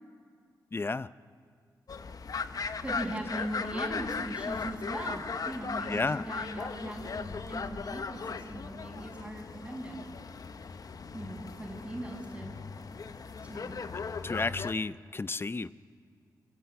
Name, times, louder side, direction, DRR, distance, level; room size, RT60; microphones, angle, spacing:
voice 1, 0.7-1.1 5.9-6.2 14.2-15.7, left 3 dB, 30° left, 16 dB, 0.6 m, -32 dB
sound 1, 1.9-14.7, left 5 dB, 55° left, 0.9 m, -38 dB
voice 2, 2.8-10.0 11.1-12.5 13.4-13.8, right 1 dB, 10° right, -6 dB, 5.9 m, -39 dB
24.5 x 16.5 x 8.7 m, 2.2 s
cardioid pair, 60°, 7 cm